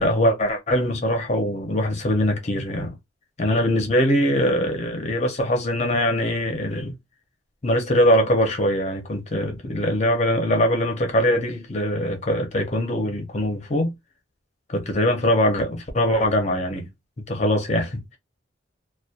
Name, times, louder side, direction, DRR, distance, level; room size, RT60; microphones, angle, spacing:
voice 1, 0.0-3.0 3.4-6.9 7.6-13.9 14.7-16.9 17.3-18.0, equal, 35° left, 0.6 m, -22 dB
2.2 x 2.1 x 2.7 m
head